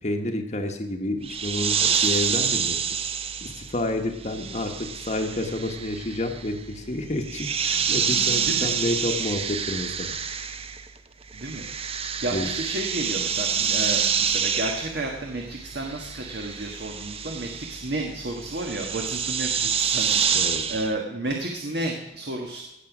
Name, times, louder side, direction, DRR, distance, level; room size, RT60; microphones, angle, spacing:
voice 1, 0.0-2.8 3.4-10.1 12.3-12.5 20.3-20.6, left 1 dB, 40° left, 4 dB, 1.2 m, -29 dB
sound 1, 1.2-11.0 11.2-20.9, right 7 dB, 30° right, 0.7 m, -28 dB
voice 2, 8.3-8.7 11.3-11.6 12.2-22.6, right 1 dB, 60° right, 1 dB, 1.5 m, -32 dB
17.0 x 7.1 x 6.1 m, 0.93 s
head